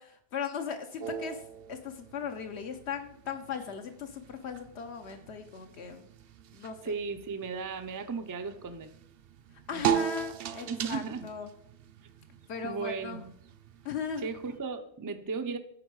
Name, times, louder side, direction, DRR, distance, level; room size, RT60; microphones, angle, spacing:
voice 1, 0.0-1.4 1.7-6.1 6.5-6.9 9.7-11.5 12.5-13.2 13.8-14.3, left 6 dB, 75° left, 5 dB, 1.0 m, -38 dB
sound 1, 1.0-14.6, right 9 dB, 65° right, 0.7 m, -39 dB
voice 2, 6.8-8.9 9.7-10.0 10.7-11.3 12.6-13.3 14.2-15.6, right 4 dB, 35° right, 8 dB, 0.3 m, -36 dB
9.8 x 4.4 x 4.7 m, 0.69 s
omnidirectional pair, 1.1 m